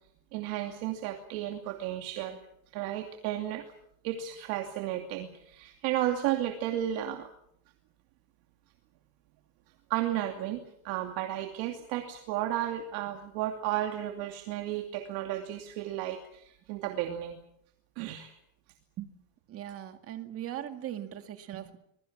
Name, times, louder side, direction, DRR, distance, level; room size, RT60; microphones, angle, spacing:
voice 1, 0.3-2.4 2.7-3.7 4.0-7.3 9.9-17.4 18.0-18.3, right 12 dB, 60° right, 4 dB, 2.7 m, -33 dB
voice 2, 19.5-21.8, right 11 dB, 35° right, 8 dB, 2.2 m, -39 dB
25.5 x 21.5 x 7.4 m, 0.72 s
cardioid pair, 155°, 41 cm